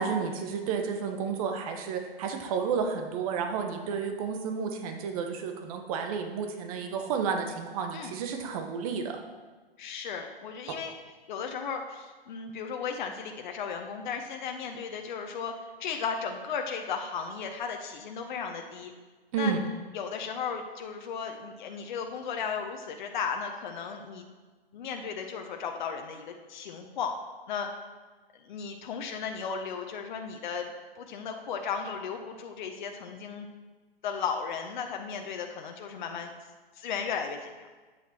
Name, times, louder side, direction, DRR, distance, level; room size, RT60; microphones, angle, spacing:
voice 1, 0.0-9.2 10.7-10.8 19.3-19.6, right 6 dB, 35° right, 5 dB, 1.3 m, -31 dB
voice 2, 9.8-10.9 11.3-15.5 15.8-18.9 19.3-19.6 19.9-24.2 24.7-27.1 27.5-27.7 28.5-30.7 31.0-33.5 34.0-36.3 36.7-37.5, left 6 dB, 50° left, 4 dB, 1.0 m, -35 dB
10.5 x 8.3 x 4.4 m, 1.3 s
hypercardioid pair, 135°, 30 cm